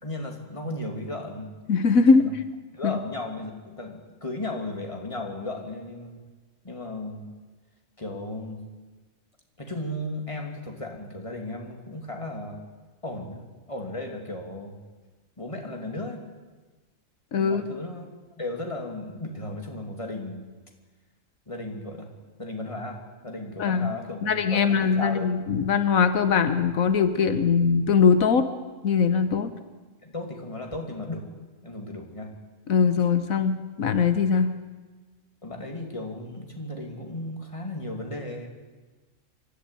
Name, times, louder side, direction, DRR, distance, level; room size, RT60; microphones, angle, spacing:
voice 1, 0.0-1.5 2.1-2.3 2.7-6.2 6.6-7.3 8.0-8.6 9.6-12.6 13.0-14.8 15.4-16.2 17.4-18.1 18.4-20.5 21.5-22.1 22.4-25.3 30.0-31.3 31.6-32.3 35.4-38.5, left 2 dB, 25° left, 2 dB, 2.9 m, -35 dB
voice 2, 1.7-2.3 2.8-2.9 17.3-17.7 23.6-23.9 24.2-28.5 28.8-29.5 32.7-34.5, left 5 dB, 85° left, 10 dB, 1.5 m, -21 dB
25.0 x 13.0 x 9.9 m, 1.3 s
omnidirectional pair, 1.4 m